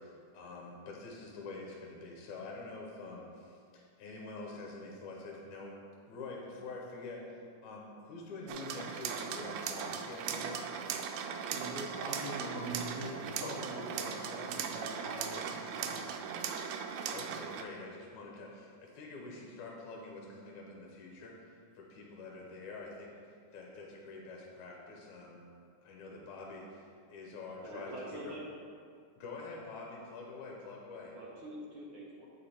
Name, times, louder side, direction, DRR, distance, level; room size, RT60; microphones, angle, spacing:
voice 1, 0.0-5.8 6.1-10.7 17.1-21.5 21.8-23.1 23.5-25.5 25.8-28.3 29.2-31.1, left 3 dB, 75° left, -2 dB, 2.2 m, -46 dB
sound 1, 8.5-17.6, right 7 dB, 90° right, 2.0 m, -38 dB
voice 2, 11.5-16.1, right 1 dB, 40° right, -10 dB, 2.1 m, -42 dB
voice 3, 27.6-28.5 31.1-32.3, right 1 dB, 70° right, -4 dB, 1.3 m, -45 dB
8.2 x 4.9 x 4.3 m, 2.3 s
omnidirectional pair, 3.4 m